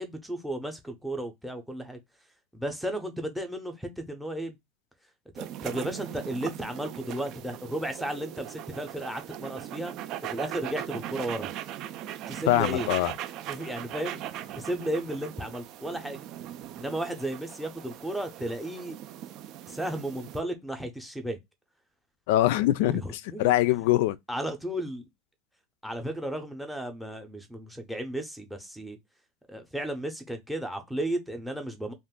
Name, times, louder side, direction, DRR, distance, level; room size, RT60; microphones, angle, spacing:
voice 1, 0.0-2.0 2.5-4.6 5.4-9.9 10.3-11.5 12.3-12.9 13.5-14.2 14.6-16.2 16.8-19.0 19.7-21.4 22.8-23.5 24.3-25.0 25.8-29.0 29.5-31.9, right 1 dB, ahead, 0.6 m, -34 dB
sound 1, 5.4-20.4, right 12 dB, 45° right, 0.3 m, -39 dB
voice 2, 12.5-13.1 22.3-23.0 23.4-24.2, left 15 dB, 75° left, 0.3 m, -23 dB
2.5 x 2.4 x 3.6 m
supercardioid pair, 145°, 0 cm